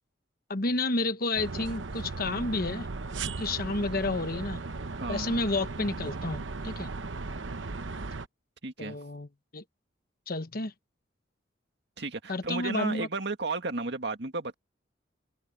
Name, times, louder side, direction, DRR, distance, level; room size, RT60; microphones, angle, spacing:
voice 1, 0.5-2.9 3.4-4.6 5.1-6.9 8.8-9.3 9.5-9.6 10.3-10.7 12.3-13.1, left 2 dB, 50° left, 1.2 m, -30 dB
sound 1, 1.4-8.3, right 3 dB, 85° right, 0.9 m, -37 dB
voice 2, 5.0-5.4 8.6-9.0 12.0-14.5, right 3 dB, 65° right, 2.2 m, -33 dB
open air
head